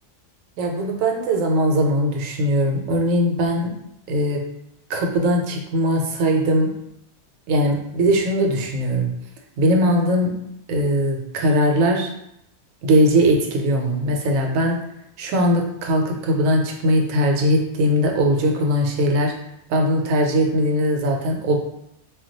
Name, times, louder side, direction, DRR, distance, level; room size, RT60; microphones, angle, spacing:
voice 1, 0.6-3.7 4.1-4.4 4.9-6.7 7.5-9.1 9.6-10.3 10.7-12.1 12.8-14.8 15.2-19.3 19.7-21.6, equal, 80° right, 2 dB, 1.0 m, -20 dB
2.3 x 2.2 x 3.9 m, 0.79 s
omnidirectional pair, 1.4 m